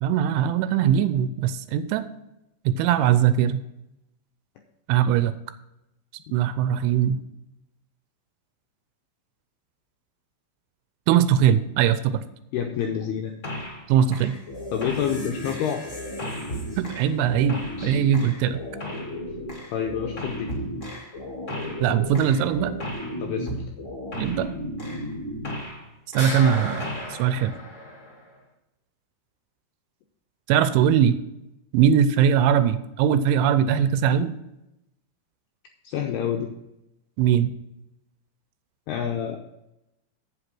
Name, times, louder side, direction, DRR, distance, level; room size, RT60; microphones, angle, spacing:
voice 1, 0.0-2.0 2.7-3.6 4.9-5.3 6.3-7.2 11.1-12.2 13.9-14.4 16.8-18.6 21.8-22.8 24.1-24.5 26.1-27.6 30.5-31.2 31.7-34.3 37.2-37.5, right 9 dB, 80° right, 12 dB, 2.9 m, -21 dB
voice 2, 12.5-13.3 14.7-15.8 19.7-20.5 23.2-23.5 35.8-36.5 38.9-39.4, left 8 dB, 85° left, 3 dB, 2.3 m, -28 dB
sound 1, 13.4-13.9 14.1-25.9 26.1-28.3, left 1 dB, 50° left, 0.9 m, -34 dB
8.3 x 8.0 x 5.9 m, 0.88 s
omnidirectional pair, 5.6 m